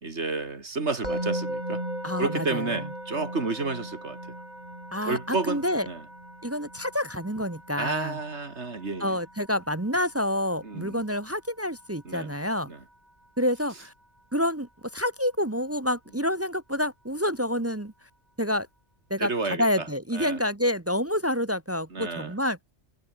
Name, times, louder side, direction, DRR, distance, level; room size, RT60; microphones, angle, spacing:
voice 1, 0.0-1.8 2.2-4.4 5.0-6.0 7.8-9.2 10.6-11.0 12.0-12.3 12.7-12.8 19.2-19.9 20.1-20.4 21.9-22.3, right 3 dB, 80° right, 3.1 m, -31 dB
Musical instrument, 1.0-12.1, right 1 dB, 40° right, 7.8 m, -38 dB
voice 2, 2.0-2.8 4.9-5.9 6.4-8.2 9.0-12.7 13.4-13.9 14.3-17.9 18.4-18.7 19.1-22.6, left 1 dB, 15° right, 0.8 m, -28 dB
omnidirectional pair, 1.2 m